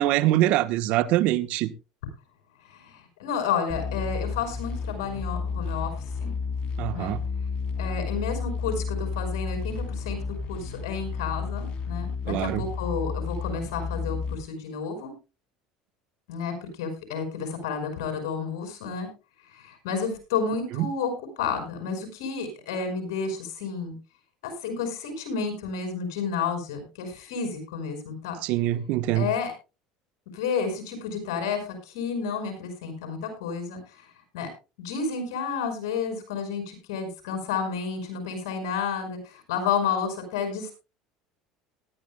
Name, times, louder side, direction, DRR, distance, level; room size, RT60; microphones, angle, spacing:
voice 1, 0.0-1.7 6.8-7.2 12.3-12.7 20.8-20.9 28.4-29.3, right 14 dB, 65° right, 1.0 m, -24 dB
voice 2, 2.6-5.9 6.2-6.3 6.9-7.2 7.8-10.2 10.5-15.1 16.3-19.1 19.5-21.1 21.4-23.9 24.4-28.4 29.1-29.5 30.3-34.1 34.3-34.5 34.8-40.7, left 6 dB, 85° left, 5.5 m, -31 dB
sound 1, 3.7-14.4, left 5 dB, 45° left, 3.3 m, -32 dB
19.0 x 13.0 x 2.2 m
supercardioid pair, 100°, 2 cm